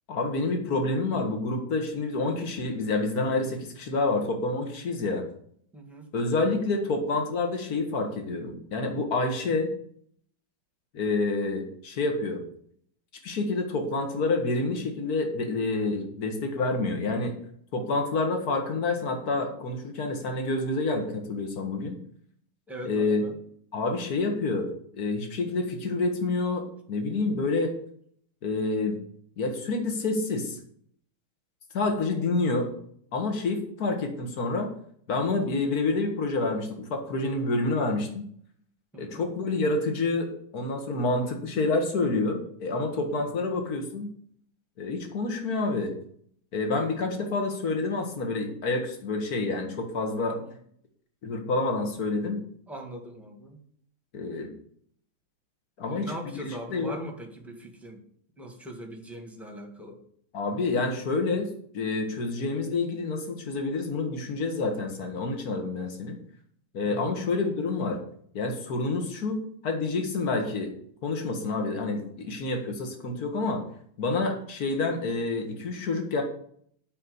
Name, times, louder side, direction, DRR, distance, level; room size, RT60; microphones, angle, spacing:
voice 1, 0.1-5.3 6.1-9.7 10.9-12.4 13.2-17.4 17.7-22.0 22.8-23.2 23.7-27.7 28.4-29.0 29.4-30.6 31.7-32.7 33.1-34.7 35.1-38.2 39.0-44.1 44.8-45.9 46.5-50.4 51.2-52.4 54.1-54.5 55.8-57.0 60.3-61.5 61.7-66.2 66.7-68.0 68.3-70.7 71.0-73.6 74.0-76.2, left 3 dB, 45° left, 4 dB, 2.1 m, -28 dB
voice 2, 5.7-6.1 22.7-23.4 38.9-39.2 43.2-43.5 46.7-46.9 50.4-50.6 52.7-53.6 55.9-58.0 58.4-60.0 66.8-67.1 72.8-73.0, equal, ahead, 2 dB, 1.5 m, -41 dB
8.6 x 5.5 x 8.0 m, 0.63 s
omnidirectional pair, 2.3 m